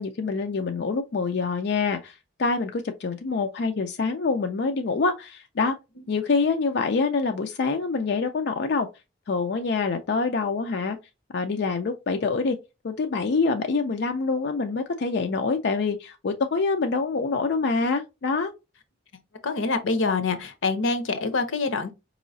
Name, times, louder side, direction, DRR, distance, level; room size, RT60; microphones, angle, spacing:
voice 1, 0.0-5.7 6.1-8.9 9.3-11.0 11.3-12.6 12.8-18.5, left 4 dB, 60° left, 0.4 m, -26 dB
voice 2, 19.4-21.9, left 3 dB, 90° left, 0.7 m, -25 dB
4.6 x 3.0 x 2.6 m
head